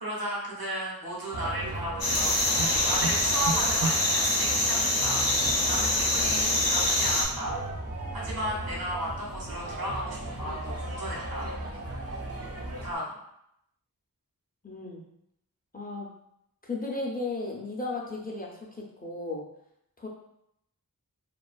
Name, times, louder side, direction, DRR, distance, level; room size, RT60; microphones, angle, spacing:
voice 1, 0.0-2.3 2.8-5.2 5.7-7.5 8.1-11.4 12.8-13.1, equal, 80° right, -5 dB, 0.9 m, -34 dB
sound 1, 1.3-12.9, right 2 dB, 45° right, 0.4 m, -36 dB
sound 2, 2.0-7.3, left 1 dB, 75° left, 0.6 m, -25 dB
voice 2, 14.6-15.0 15.7-16.1 16.6-19.4 20.0-20.1, left 2 dB, 25° left, -2 dB, 0.5 m, -35 dB
2.3 x 2.3 x 2.3 m, 0.78 s
wide cardioid pair, 50°, 36 cm